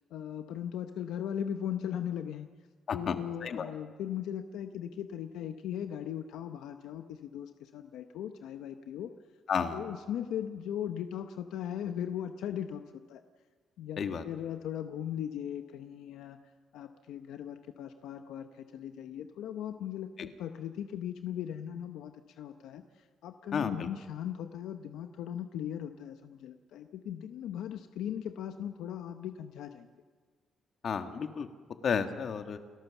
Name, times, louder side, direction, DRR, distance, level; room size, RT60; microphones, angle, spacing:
voice 1, 0.1-2.5 2.9-9.1 9.7-13.2 13.8-16.4 16.7-29.9, left 9 dB, 85° left, 8 dB, 0.8 m, -38 dB
voice 2, 9.5-9.8 14.0-14.2 23.5-23.9 30.8-31.5 31.8-32.6, left 6 dB, 55° left, 7 dB, 1.7 m, -32 dB
29.5 x 12.5 x 7.2 m, 1.5 s
cardioid pair, 90°, 0 cm